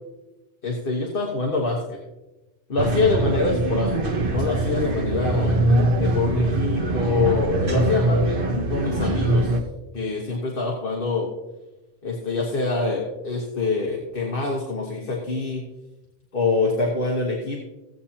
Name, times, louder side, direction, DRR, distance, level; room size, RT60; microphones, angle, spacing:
voice 1, 0.6-2.0 2.7-5.6 6.0-8.4 8.7-9.5 9.9-11.3 12.0-15.6 16.3-17.6, left 3 dB, 50° left, -1 dB, 1.5 m, -25 dB
sound 1, 2.8-9.6, right 1 dB, 50° right, 1.3 m, -22 dB
16.5 x 8.2 x 2.9 m, 1.0 s
omnidirectional pair, 1.2 m